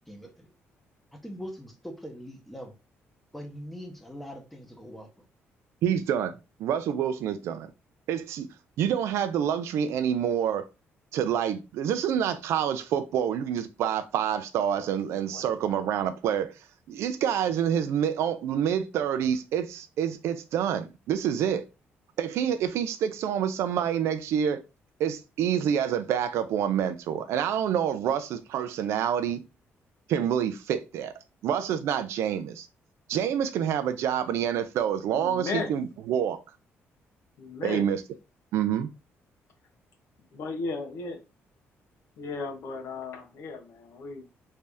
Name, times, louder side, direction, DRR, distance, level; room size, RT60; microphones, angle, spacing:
voice 1, 0.1-0.5 1.1-2.8 3.3-5.3, equal, 5° left, 0.7 m, -42 dB
voice 2, 5.8-6.3 6.6-7.7 8.1-8.5 8.8-10.7 11.1-16.5 16.9-21.7 22.2-24.6 25.0-29.4 30.1-31.1 31.4-32.7 33.1-36.4 37.6-38.0 38.5-38.9, right 9 dB, 75° right, 0.4 m, -27 dB
voice 3, 35.1-35.7 37.4-37.8 40.3-41.2 42.2-44.3, left 3 dB, 70° left, 0.9 m, -35 dB
3.2 x 2.7 x 3.4 m
cardioid pair, 150°, 5 cm